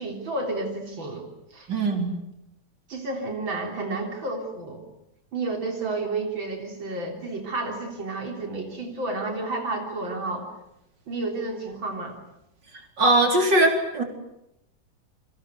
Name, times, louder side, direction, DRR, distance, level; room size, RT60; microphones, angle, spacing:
voice 1, 0.0-1.7 2.9-4.8 5.3-10.5 11.1-12.2, right 2 dB, 85° right, 2 dB, 4.3 m, -31 dB
voice 2, 1.7-2.1 13.0-14.0, right 2 dB, 65° right, 4 dB, 4.9 m, -20 dB
28.5 x 25.5 x 8.1 m, 0.82 s
omnidirectional pair, 2.1 m